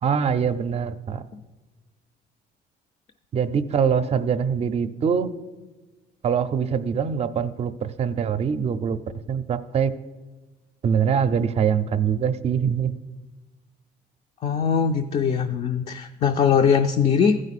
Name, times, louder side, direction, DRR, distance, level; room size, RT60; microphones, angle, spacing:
voice 1, 0.0-1.2 3.3-5.3 6.2-9.0 9.3-9.9 10.8-12.9, right 7 dB, 35° right, 12 dB, 0.5 m, -23 dB
voice 2, 14.4-17.4, left 6 dB, 40° left, 5 dB, 0.4 m, -21 dB
14.5 x 4.9 x 4.1 m, 1.2 s
cardioid pair, 110°, 17 cm